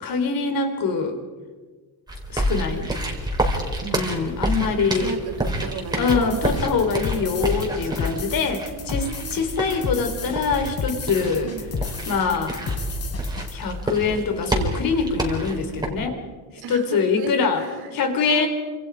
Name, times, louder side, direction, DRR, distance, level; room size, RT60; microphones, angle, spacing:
voice 1, 0.0-1.2 2.3-2.9 3.9-5.1 6.0-11.5 12.1-12.6 13.5-16.2 16.7-17.6 17.9-18.5, left 5 dB, 55° left, 6 dB, 4.1 m, -24 dB
sound 1, 2.1-15.9, right 1 dB, 10° right, 4.5 m, -29 dB
voice 2, 4.8-7.2 8.7-9.4 11.4-11.8 16.6-18.5, right 7 dB, 65° right, 5 dB, 4.1 m, -35 dB
sound 2, 6.1-13.5, left 4 dB, 35° left, 3.3 m, -32 dB
28.5 x 27.0 x 4.9 m, 1.4 s
cardioid pair, 140°, 42 cm